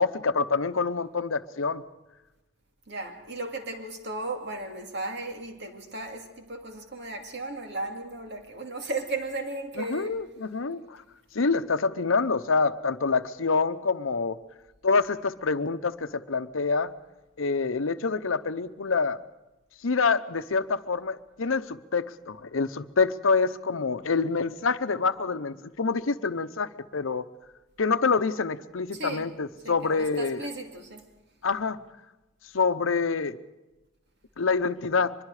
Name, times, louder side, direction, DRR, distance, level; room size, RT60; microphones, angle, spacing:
voice 1, 0.0-1.8 9.8-10.8 11.3-14.4 14.8-16.9 17.4-19.2 19.8-27.3 27.8-30.5 31.4-31.8 32.5-33.4 34.4-35.2, left 4 dB, 85° left, 0.8 m, -26 dB
voice 2, 2.9-10.3 28.9-29.4 29.6-31.1, right 2 dB, 60° right, 2.5 m, -35 dB
24.0 x 22.0 x 4.9 m
head